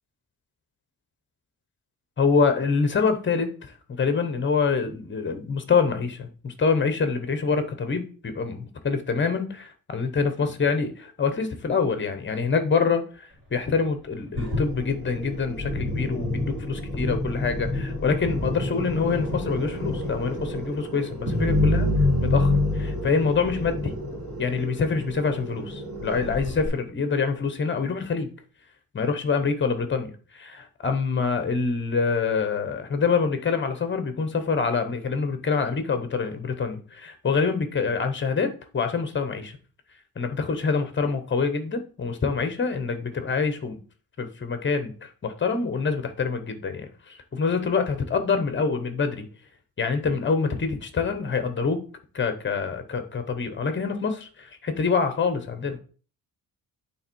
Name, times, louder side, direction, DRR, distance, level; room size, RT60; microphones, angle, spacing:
voice 1, 2.2-21.9 22.2-23.9 24.4-28.3 28.9-39.5 40.2-43.8 44.2-49.3 49.8-51.8 52.1-55.8, left 5 dB, 30° left, 8 dB, 0.9 m, -26 dB
sound 1, 14.4-26.7, left 2 dB, 35° right, 2.9 m, -28 dB
8.7 x 3.5 x 4.5 m, 0.39 s
wide cardioid pair, 175°, 36 cm